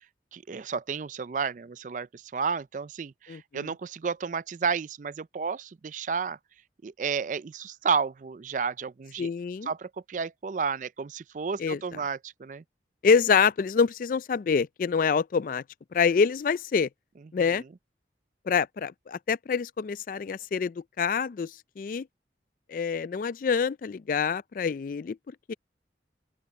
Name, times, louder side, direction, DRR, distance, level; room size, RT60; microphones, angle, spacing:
voice 1, 0.3-6.4 6.8-9.3 9.6-12.6 17.5-17.6, right 5 dB, 45° right, 0.4 m, -32 dB
voice 2, 3.3-3.7 9.2-9.7 11.6-11.8 13.0-15.6 15.9-16.9 17.3-17.6 18.5-22.1 22.7-25.2 25.5-25.6, left 5 dB, 50° left, 0.3 m, -26 dB
open air
head